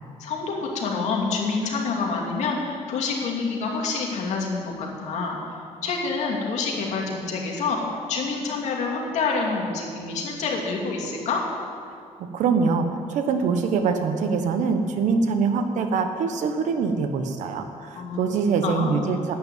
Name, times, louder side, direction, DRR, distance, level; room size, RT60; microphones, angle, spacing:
voice 1, 0.2-5.4 5.8-7.8 8.1-11.4 18.0-18.2 18.6-19.0, left 4 dB, 70° left, -1 dB, 2.6 m, -27 dB
voice 2, 12.2-19.3, right 5 dB, 80° right, 7 dB, 1.3 m, -24 dB
11.5 x 9.0 x 9.1 m, 2.4 s
cardioid pair, 165°, 12 cm